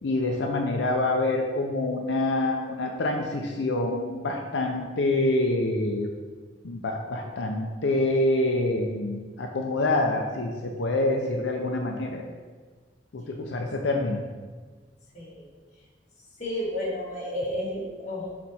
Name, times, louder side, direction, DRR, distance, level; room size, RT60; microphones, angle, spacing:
voice 1, 0.0-6.1 6.6-12.2 13.1-14.2, left 2 dB, 85° left, 1 dB, 0.6 m, -26 dB
voice 2, 15.1-15.5 16.4-18.3, left 1 dB, 45° left, -5 dB, 1.7 m, -31 dB
6.5 x 4.0 x 4.3 m, 1.4 s
head